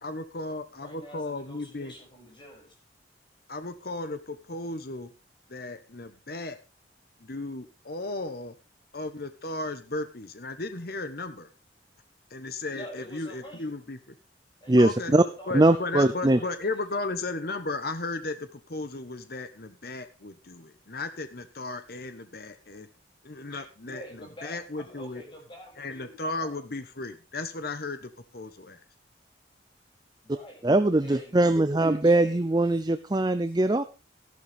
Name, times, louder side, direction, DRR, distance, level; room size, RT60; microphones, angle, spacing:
voice 1, 0.0-1.9 3.5-5.1 5.5-6.6 7.2-8.5 8.9-11.5 12.3-14.2 14.7-15.1 15.5-22.9 23.2-25.2 25.8-28.8, left 2 dB, 55° left, 9 dB, 1.2 m, -35 dB
voice 2, 0.8-2.7 12.7-13.8 14.6-16.5 23.5-26.6 30.2-30.6 31.0-32.6 33.5-33.6, equal, 25° left, 0 dB, 6.9 m, -47 dB
voice 3, 14.7-15.2 15.5-16.4 30.6-33.8, right 2 dB, 20° right, 11 dB, 0.5 m, -21 dB
14.0 x 12.0 x 3.5 m, 0.31 s
head